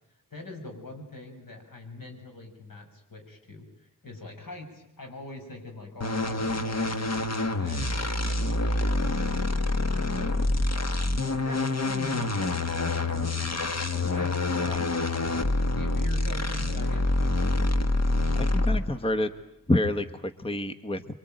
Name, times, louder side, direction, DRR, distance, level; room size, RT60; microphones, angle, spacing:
voice 1, 0.3-7.1 7.6-17.6, left 2 dB, 75° left, 4 dB, 6.8 m, -43 dB
sound 1, 6.0-19.0, left 2 dB, 50° left, 1.6 m, -26 dB
voice 2, 18.3-19.3 19.7-21.0, left 1 dB, 15° left, 10 dB, 1.1 m, -28 dB
26.5 x 24.0 x 9.1 m, 0.79 s
wide cardioid pair, 110°, 34 cm